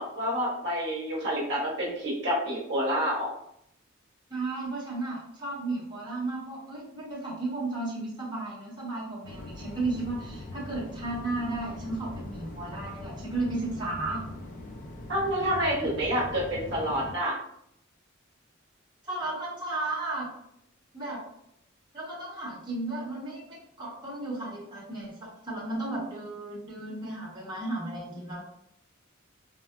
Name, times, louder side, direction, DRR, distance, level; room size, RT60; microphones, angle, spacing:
voice 1, 0.0-3.3 15.1-17.4, equal, 60° right, -5 dB, 0.8 m, -28 dB
voice 2, 4.3-14.2 16.1-16.2 19.0-20.3 20.9-21.2 21.9-28.4, right 2 dB, 25° right, -7 dB, 0.8 m, -34 dB
sound 1, 9.2-17.1, left 2 dB, 40° left, 0.4 m, -41 dB
3.6 x 2.0 x 2.2 m, 0.75 s
head